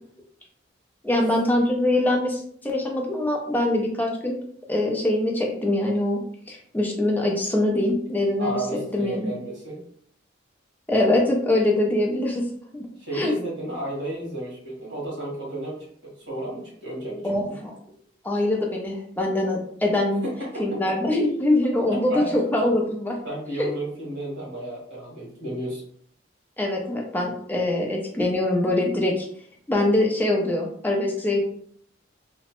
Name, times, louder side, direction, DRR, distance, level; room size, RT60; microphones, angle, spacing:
voice 1, 1.0-4.4 4.7-9.3 10.9-12.5 12.7-12.9 13.1-13.3 17.2-17.7 18.2-20.2 20.6-23.2 23.6-23.7 26.6-29.3 29.7-31.4, left 1 dB, 10° left, -1 dB, 0.5 m, -23 dB
voice 2, 8.4-9.8 13.0-17.6 20.2-20.8 21.9-22.4 23.2-25.8, right 1 dB, 70° right, -4 dB, 1.4 m, -32 dB
2.9 x 2.1 x 2.9 m, 0.63 s
head